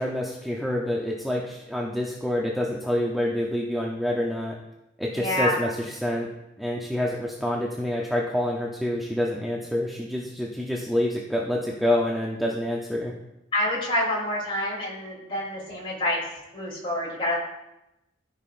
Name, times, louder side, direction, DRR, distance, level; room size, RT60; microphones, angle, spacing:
voice 1, 0.0-4.6 5.0-6.3 6.6-13.1, left 1 dB, ahead, -2 dB, 0.6 m, -27 dB
voice 2, 5.1-5.6 13.5-16.2 16.5-17.4, left 1 dB, 25° left, -5 dB, 2.9 m, -27 dB
14.0 x 5.5 x 2.5 m, 0.93 s
head